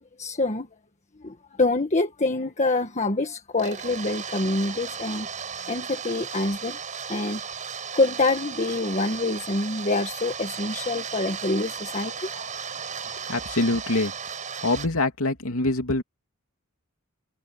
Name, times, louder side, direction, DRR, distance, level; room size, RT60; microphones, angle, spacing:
voice 1, 0.2-0.7 1.2-5.3 5.7-6.8 7.1-7.4 7.9-12.5, left 2 dB, 35° left, 1.6 m, -26 dB
sound 1, 3.5-14.9, right 6 dB, 40° right, 4.6 m, -35 dB
voice 2, 13.3-14.1 14.6-16.0, left 2 dB, 85° left, 2.9 m, -24 dB
head